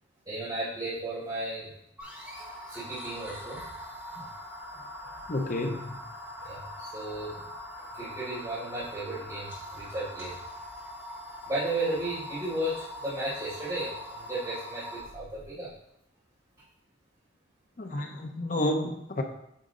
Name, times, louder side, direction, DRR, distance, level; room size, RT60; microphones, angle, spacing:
voice 1, 0.2-1.7 2.7-3.6 6.4-7.4 7.8-10.4 11.4-15.7, right 1 dB, 25° right, -14 dB, 2.9 m, -34 dB
sound 1, 2.0-15.0, equal, 10° right, 2.3 m, -42 dB
voice 2, 5.3-5.9 17.8-19.2, left 1 dB, 40° left, 4 dB, 0.6 m, -30 dB
9.2 x 4.0 x 3.8 m, 0.78 s
head